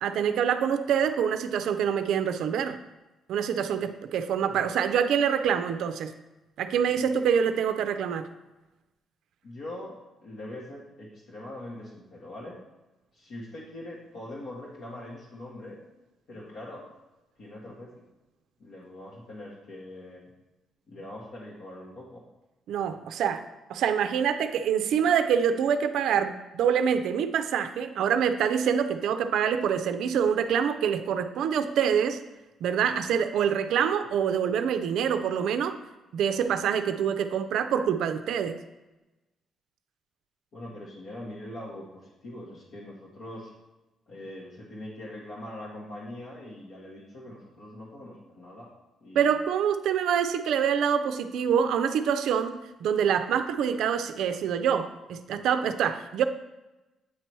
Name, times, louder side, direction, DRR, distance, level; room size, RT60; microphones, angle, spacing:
voice 1, 0.0-2.8 3.3-6.1 6.6-8.3 22.7-23.4 23.7-32.2 32.6-35.7 36.1-38.6 49.1-56.2, right 8 dB, 80° right, 9 dB, 0.4 m, -26 dB
voice 2, 9.4-12.6 13.1-15.8 16.3-16.9 17.4-18.0 18.6-20.2 20.9-22.2 40.5-43.5 44.1-48.7 49.0-49.3, left 1 dB, 70° left, -5 dB, 1.2 m, -42 dB
8.3 x 3.0 x 4.5 m, 1.1 s
cardioid pair, 90°, 0 cm